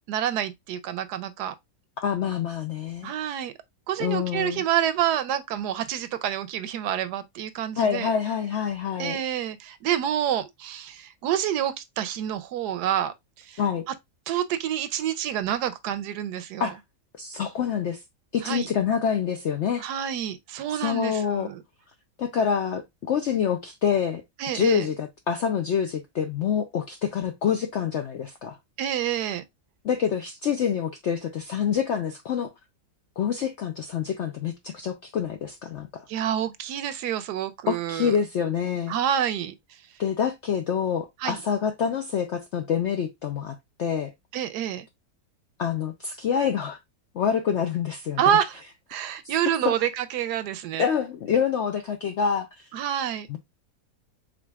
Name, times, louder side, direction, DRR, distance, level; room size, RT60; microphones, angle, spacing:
voice 1, 0.1-1.5 3.0-3.5 3.9-8.1 9.0-13.6 14.3-16.7 18.4-18.7 19.8-21.6 24.4-24.9 28.8-29.4 36.1-38.2 38.9-39.5 41.2-41.4 44.3-44.9 48.2-48.6 48.9-50.9 52.7-53.3, right 10 dB, 75° right, 1.1 m, -28 dB
voice 2, 2.0-3.1 4.0-4.6 7.8-9.2 13.6-13.9 16.6-16.8 17.1-18.0 18.3-19.9 20.8-21.5 22.2-24.2 24.5-28.6 29.8-32.5 33.2-36.0 37.7-38.9 40.0-44.1 45.6-46.8 47.1-48.2 49.2-49.3 49.6-49.7 50.8-52.7 53.3-53.4, left 7 dB, 75° left, 0.6 m, -26 dB
4.9 x 3.7 x 2.3 m
omnidirectional pair, 1.8 m